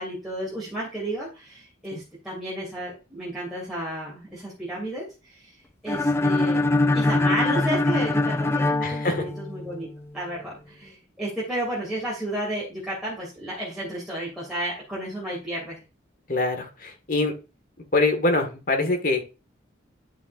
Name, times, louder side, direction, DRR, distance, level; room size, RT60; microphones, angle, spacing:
voice 1, 0.0-5.5 5.8-6.6 6.9-9.9 10.1-15.8, right 1 dB, ahead, -7 dB, 2.7 m, -32 dB
sound 1, 5.9-9.8, left 2 dB, 15° left, 0.4 m, -23 dB
voice 2, 8.8-9.3 16.3-17.3 17.9-19.2, left 2 dB, 45° left, 4 dB, 1.7 m, -24 dB
11.0 x 5.9 x 2.5 m, 0.30 s
head